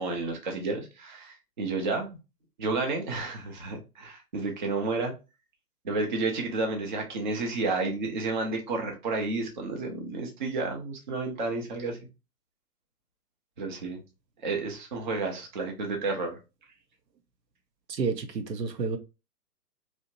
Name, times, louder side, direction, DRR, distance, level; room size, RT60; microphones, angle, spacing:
voice 1, 0.0-2.2 2.6-5.1 5.8-12.0 13.6-14.0 14.4-16.4, right 3 dB, 30° right, 0.5 m, -31 dB
voice 2, 17.9-19.0, right 4 dB, 85° right, 0.6 m, -30 dB
2.7 x 2.0 x 2.8 m
figure-of-eight pair, 125°, 49 cm